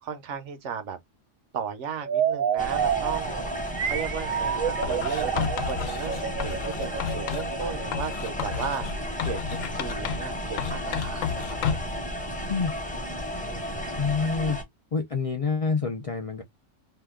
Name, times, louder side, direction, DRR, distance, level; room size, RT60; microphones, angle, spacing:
voice 1, 0.0-1.0 1.5-9.4 9.7-11.9 13.5-14.0, right 7 dB, 70° right, 1.0 m, -36 dB
sound 1, 2.0-8.7, right 8 dB, 90° right, 1.1 m, -29 dB
sound 2, 2.6-14.6, equal, 10° left, 0.7 m, -33 dB
Writing, 4.8-7.5 7.9-10.3 10.6-12.0, left 8 dB, 85° left, 1.0 m, -32 dB
voice 2, 14.0-14.6 14.9-16.4, left 5 dB, 60° left, 0.3 m, -27 dB
2.8 x 2.3 x 3.5 m
omnidirectional pair, 1.3 m